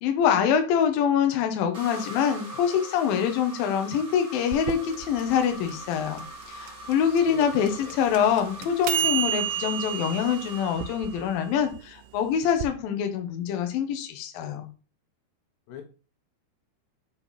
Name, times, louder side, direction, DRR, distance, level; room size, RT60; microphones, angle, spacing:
voice 1, 0.0-6.2 6.5-14.7, left 8 dB, 70° left, 5 dB, 2.4 m, -25 dB
sound 1, 1.7-11.7, equal, 20° right, 2.2 m, -42 dB
sound 2, 4.5-12.7, right 11 dB, 85° right, 2.6 m, -32 dB
voice 2, 7.3-8.0 15.7-15.8, left 7 dB, 90° left, 4 dB, 3.4 m, -42 dB
7.2 x 4.4 x 4.0 m, 0.35 s
omnidirectional pair, 4.8 m